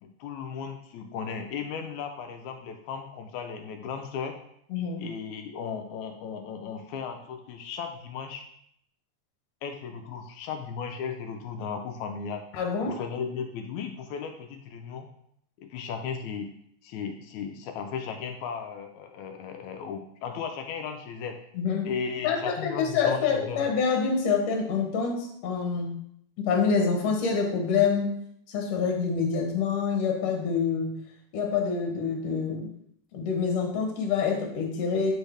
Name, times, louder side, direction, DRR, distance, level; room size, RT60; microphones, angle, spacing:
voice 1, 0.0-4.3 5.0-8.4 9.6-12.4 12.8-15.1 15.6-16.5 16.8-21.4 21.8-23.6, left 6 dB, 80° left, 5 dB, 1.9 m, -36 dB
voice 2, 4.7-5.1 12.5-13.0 21.6-21.9 22.2-26.0 26.4-28.2 28.5-30.9 31.3-32.7 33.1-35.2, left 5 dB, 65° left, 2 dB, 2.0 m, -26 dB
8.0 x 4.5 x 3.4 m, 0.70 s
omnidirectional pair, 3.5 m